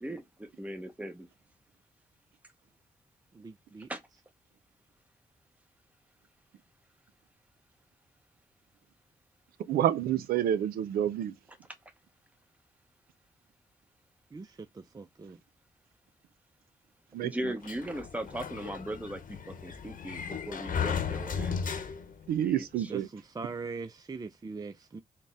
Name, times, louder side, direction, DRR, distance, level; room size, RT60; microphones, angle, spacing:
voice 1, 0.6-1.3 3.9-4.0 17.2-19.2 19.6-21.6 22.4-22.9, right 1 dB, 10° right, 1.0 m, -38 dB
voice 2, 3.3-3.9 14.3-15.4 22.9-25.0, right 4 dB, 25° right, 0.4 m, -41 dB
voice 3, 9.7-11.3 17.1-17.3 22.3-23.1, right 11 dB, 85° right, 0.4 m, -28 dB
Sliding door, 17.6-22.3, left 6 dB, 65° left, 0.9 m, -35 dB
3.8 x 2.2 x 3.4 m
supercardioid pair, 45°, 15 cm